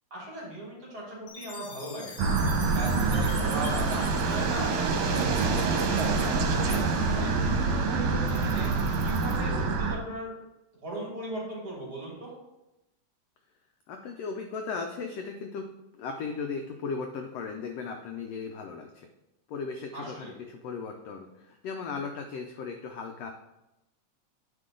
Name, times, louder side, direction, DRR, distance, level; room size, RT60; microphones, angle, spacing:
voice 1, 0.1-2.2 2.7-5.2 5.5-6.3 6.6-8.7 9.0-10.3 10.8-12.3 19.9-20.3, right 1 dB, 35° right, -5 dB, 3.0 m, -38 dB
Chime, 1.3-5.5, left 3 dB, 50° left, 1.9 m, -46 dB
sound 1, 2.2-10.0, right 4 dB, 75° right, 2.2 m, -26 dB
voice 2, 13.9-15.7 15.9-19.1 19.5-23.3, left 5 dB, 75° left, 4 dB, 1.5 m, -36 dB
9.7 x 4.9 x 3.8 m, 0.93 s
omnidirectional pair, 3.4 m